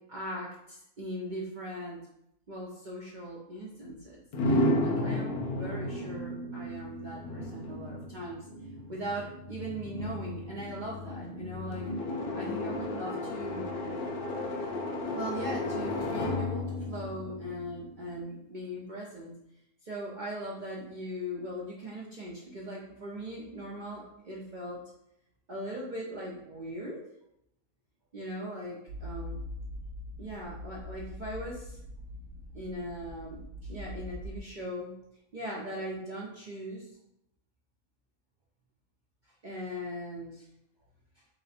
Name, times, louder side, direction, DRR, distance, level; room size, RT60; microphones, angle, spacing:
voice 1, 0.1-2.0 2.5-4.2 4.4-8.4 8.9-13.7 15.1-19.3 19.8-24.8 25.5-27.0 28.1-29.4 30.2-31.8 32.5-34.9 35.3-36.9 39.4-40.5, equal, 55° right, -4 dB, 0.5 m, -39 dB
sound 1, 4.3-18.2, left 1 dB, 65° left, 0.5 m, -33 dB
sound 2, 28.9-34.4, left 1 dB, 75° right, 1.0 m, -42 dB
3.2 x 2.9 x 4.2 m, 0.80 s
omnidirectional pair, 1.6 m